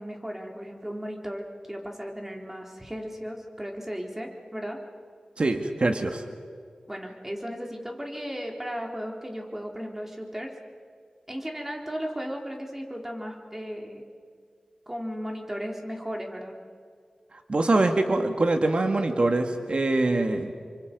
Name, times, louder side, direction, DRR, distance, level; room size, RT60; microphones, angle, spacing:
voice 1, 0.0-4.8 6.9-10.5 11.3-14.0 14.9-16.6, equal, 15° right, 1 dB, 3.9 m, -35 dB
voice 2, 5.4-6.2 17.5-20.5, right 2 dB, 50° right, 5 dB, 2.0 m, -24 dB
29.0 x 24.5 x 5.4 m, 2.2 s
wide cardioid pair, 60°, 2 cm